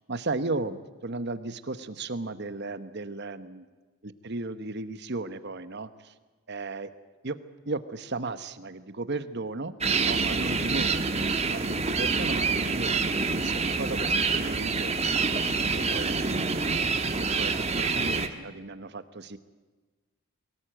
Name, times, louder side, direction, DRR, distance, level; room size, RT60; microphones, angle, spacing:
voice 1, 0.1-3.7 4.0-6.1 6.5-6.9 7.2-7.4 7.7-9.7 10.0-15.1 15.7-16.5 17.2-19.4, right 3 dB, 50° right, 12 dB, 1.0 m, -35 dB
sound 1, 9.8-18.3, right 4 dB, 30° right, 1.3 m, -27 dB
23.0 x 18.5 x 9.0 m, 1.3 s
head